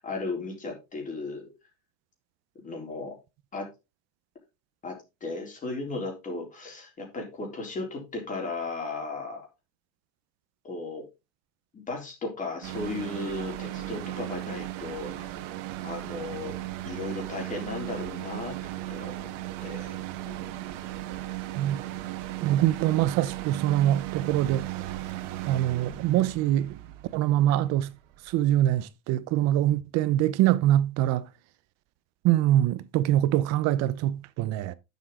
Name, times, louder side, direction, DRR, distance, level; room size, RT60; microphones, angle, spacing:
voice 1, 0.0-1.5 2.6-3.2 3.5-3.7 4.8-5.0 5.2-9.5 10.6-11.0 11.7-15.3 15.8-16.6 16.8-18.6 18.9-19.3 19.6-20.6 21.0-21.2, left 3 dB, 20° left, 3.8 m, -35 dB
sound 1, 12.6-28.8, right 15 dB, 85° right, 1.5 m, -36 dB
voice 2, 22.4-24.6 25.5-26.8 27.1-27.9 28.3-31.2 32.2-34.7, right 13 dB, 45° right, 0.8 m, -24 dB
9.9 x 7.4 x 3.7 m
cardioid pair, 155°, 36 cm